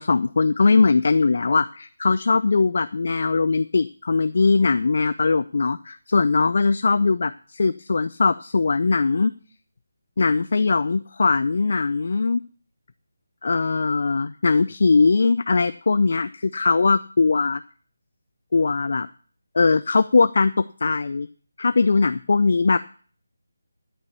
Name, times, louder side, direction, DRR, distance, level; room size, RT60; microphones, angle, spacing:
voice 1, 0.0-9.3 10.2-12.4 13.4-17.6 18.5-19.1 19.5-20.5 20.8-21.3 21.6-22.8, left 4 dB, 50° left, 13 dB, 0.4 m, -20 dB
12.0 x 5.4 x 6.7 m, 0.43 s
figure-of-eight pair, 155°, 0 cm